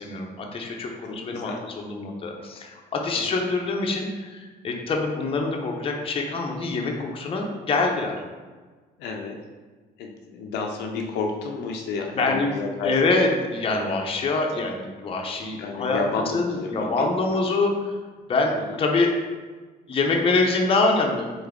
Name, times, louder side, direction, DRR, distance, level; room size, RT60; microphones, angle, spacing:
voice 1, 0.0-8.2 12.2-12.5 12.8-16.0 16.3-17.9 18.3-19.1 19.9-21.3, left 3 dB, 35° left, 1 dB, 0.7 m, -25 dB
voice 2, 1.0-1.6 3.1-3.3 9.0-9.4 10.0-13.0 15.5-17.4 18.6-18.8, left 4 dB, 80° left, 2 dB, 0.5 m, -31 dB
3.8 x 3.6 x 3.6 m, 1.4 s
cardioid pair, 110°, 17 cm